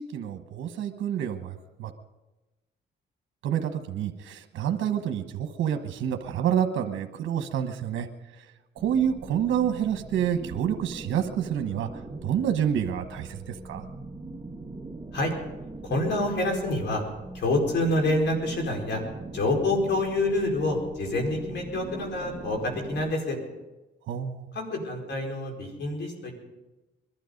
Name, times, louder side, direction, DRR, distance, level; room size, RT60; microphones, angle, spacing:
voice 1, 0.0-1.9 3.4-8.1 8.8-11.9 12.2-13.8 24.1-24.5, right 9 dB, 75° right, 6 dB, 1.1 m, -28 dB
sound 1, 8.8-23.1, right 2 dB, 15° right, 1.2 m, -41 dB
voice 2, 15.8-17.0 17.3-19.0 19.3-23.4 24.5-26.3, left 2 dB, 65° left, 2 dB, 4.8 m, -27 dB
22.0 x 12.5 x 5.2 m, 1.1 s
cardioid pair, 90°, 20 cm